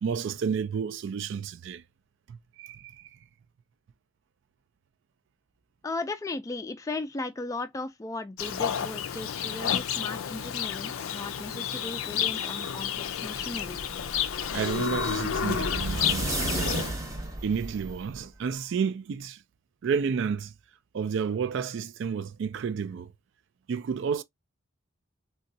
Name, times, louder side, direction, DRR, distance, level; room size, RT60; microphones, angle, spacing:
voice 1, 0.0-1.8 2.3-2.9 14.5-16.8 17.4-19.4 19.8-20.5 20.9-23.1 23.7-24.2, right 6 dB, 65° right, 0.3 m, -31 dB
voice 2, 5.8-13.8, left 2 dB, 15° left, 0.3 m, -36 dB
Livestock farm animals working animals, 8.4-16.9, left 9 dB, 90° left, 0.4 m, -31 dB
sound 1, 13.2-18.2, right 1 dB, 15° right, 0.8 m, -34 dB
3.8 x 2.2 x 2.6 m
head